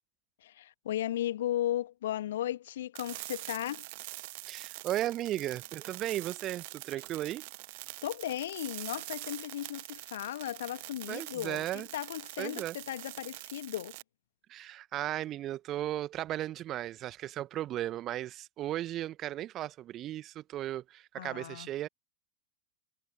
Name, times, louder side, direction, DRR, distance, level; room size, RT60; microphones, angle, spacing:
voice 1, 0.4-3.9 8.0-13.9 21.2-21.7, left 12 dB, 60° left, 2.0 m, -36 dB
sound 1, 2.9-14.0, right 23 dB, 50° right, 0.7 m, -44 dB
voice 2, 4.5-7.5 11.1-11.9 12.4-12.7 14.5-21.9, right 13 dB, 30° right, 1.5 m, -36 dB
figure-of-eight pair, 90°, 0 cm